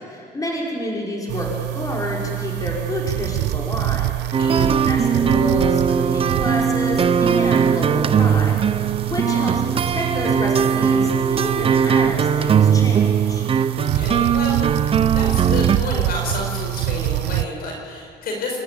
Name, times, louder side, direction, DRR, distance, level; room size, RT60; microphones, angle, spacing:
voice 1, 0.0-8.6 9.1-9.6 9.9-13.5, left 1 dB, 20° left, -2 dB, 5.7 m, -29 dB
sound 1, 1.3-17.4, right 18 dB, 85° right, 0.6 m, -26 dB
sound 2, 4.3-15.8, right 7 dB, 35° right, 0.7 m, -19 dB
voice 2, 4.4-4.8 9.3-9.5 13.8-14.6 15.1-18.6, left 2 dB, 65° left, 1 dB, 5.1 m, -30 dB
28.5 x 12.0 x 9.5 m, 2.3 s
cardioid pair, 110°, 17 cm